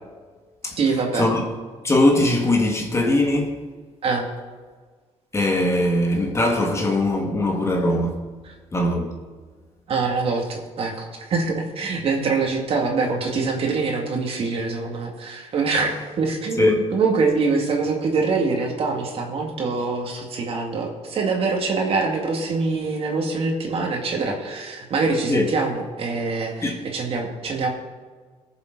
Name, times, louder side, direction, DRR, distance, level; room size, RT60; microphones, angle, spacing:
voice 1, 0.8-1.3 4.0-4.3 8.4-8.5 9.9-27.7, right 4 dB, 55° right, 2.2 m, -24 dB
voice 2, 1.8-3.6 5.3-8.2 8.7-9.1 16.6-16.8 25.3-25.4 26.6-26.7, left 1 dB, 25° left, 2.0 m, -20 dB
20.0 x 7.1 x 4.0 m
cardioid pair, 120°, 12 cm